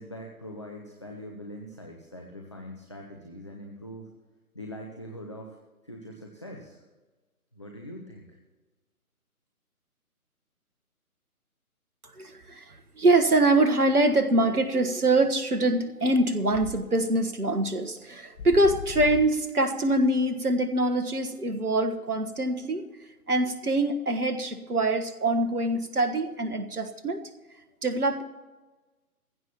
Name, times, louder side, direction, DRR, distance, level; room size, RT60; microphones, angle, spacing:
voice 1, 0.0-4.1 4.5-5.6 5.8-6.8 7.5-8.4, equal, 20° left, 0 dB, 0.6 m, -42 dB
voice 2, 12.1-22.9 23.3-27.3 27.8-28.2, right 2 dB, 75° right, 8 dB, 1.5 m, -24 dB
sound 1, 16.2-16.8 17.2-17.3 18.0-18.1 18.3-19.5, left 4 dB, 65° left, 1.0 m, -37 dB
20.0 x 15.5 x 3.0 m, 1.2 s
figure-of-eight pair, 145°, 45 cm